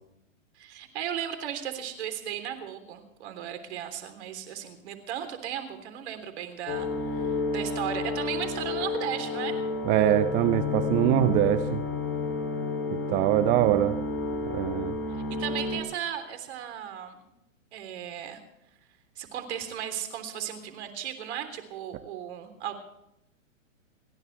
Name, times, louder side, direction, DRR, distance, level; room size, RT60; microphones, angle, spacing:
voice 1, 0.6-9.6 15.1-17.2 17.7-18.4 19.2-22.8, right 10 dB, 55° right, 8 dB, 3.4 m, -36 dB
sound 1, 6.7-15.8, left 3 dB, 35° left, 3.6 m, -31 dB
voice 2, 9.9-11.8 12.9-14.0 14.4-15.0, right 14 dB, 20° right, 12 dB, 0.5 m, -23 dB
30.0 x 11.0 x 3.3 m, 0.86 s
hypercardioid pair, 125°, 40 cm